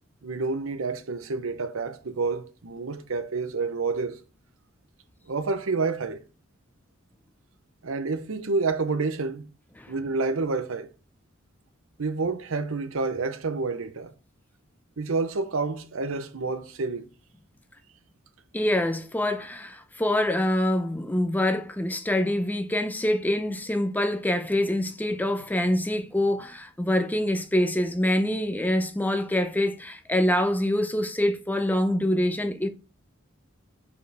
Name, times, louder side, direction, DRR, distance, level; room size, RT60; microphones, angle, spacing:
voice 1, 0.2-4.2 5.3-6.2 7.8-9.5 9.9-10.9 12.0-14.1 15.0-17.1, right 4 dB, 85° right, 0.7 m, -29 dB
voice 2, 18.5-32.7, left 1 dB, 10° left, 0.6 m, -25 dB
5.2 x 5.2 x 4.6 m
head